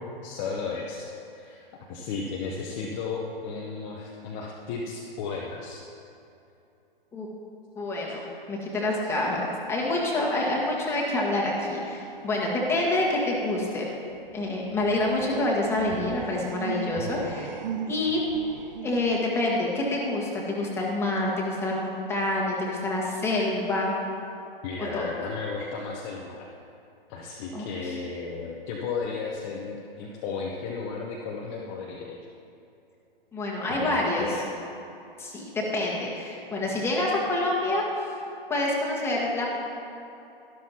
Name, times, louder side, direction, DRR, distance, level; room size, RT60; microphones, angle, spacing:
voice 1, 0.2-1.1 1.3-1.6 1.9-5.8 9.0-9.2 24.6-26.5 27.1-32.2 33.7-34.4, left 4 dB, 30° left, -2 dB, 0.9 m, -34 dB
voice 2, 7.7-13.9 14.3-17.5 17.9-18.2 18.8-23.9 24.9-25.1 27.5-27.9 33.3-34.4 35.2-37.8 38.5-39.5, left 2 dB, 10° left, -4 dB, 1.6 m, -27 dB
sound 1, 9.0-9.9 10.2-10.3 14.2-19.2, right 7 dB, 50° right, 0.6 m, -38 dB
12.0 x 12.0 x 2.9 m, 2.8 s
figure-of-eight pair, 120°, 30 cm